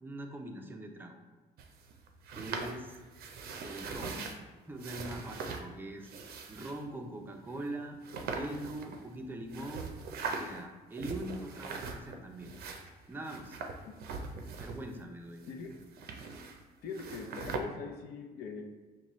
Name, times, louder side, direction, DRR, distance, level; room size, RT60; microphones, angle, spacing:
voice 1, 0.0-1.2 2.3-3.0 3.6-4.2 4.7-6.1 6.5-9.9 10.2-12.5 13.1-13.6 14.6-15.4, right 1 dB, 10° right, 3 dB, 0.5 m, -42 dB
sound 1, 1.6-4.4 4.8-5.6 6.0-6.8 7.5-7.6 8.0-9.2 9.5-10.6 10.9-12.2 12.4-15.0 15.3-16.6 16.9-17.6, right 4 dB, 65° right, 0.5 m, -41 dB
voice 2, 16.8-18.6, left 5 dB, 70° left, 2 dB, 0.6 m, -42 dB
5.4 x 2.2 x 3.0 m, 1.3 s
cardioid pair, 110°, 17 cm